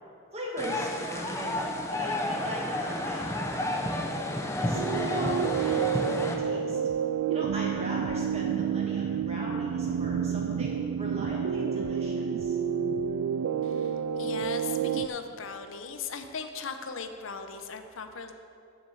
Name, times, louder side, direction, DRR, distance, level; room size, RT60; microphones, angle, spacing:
voice 1, 0.3-4.1 4.6-6.8 7.3-12.6, equal, 30° right, -4 dB, 1.7 m, -39 dB
sound 1, 0.6-6.3, left 1 dB, 15° left, 0.7 m, -31 dB
sound 2, 4.7-15.1, right 7 dB, 85° right, 0.3 m, -29 dB
voice 2, 13.6-18.3, left 5 dB, 75° left, 7 dB, 0.7 m, -38 dB
7.1 x 6.5 x 7.0 m, 2.5 s
head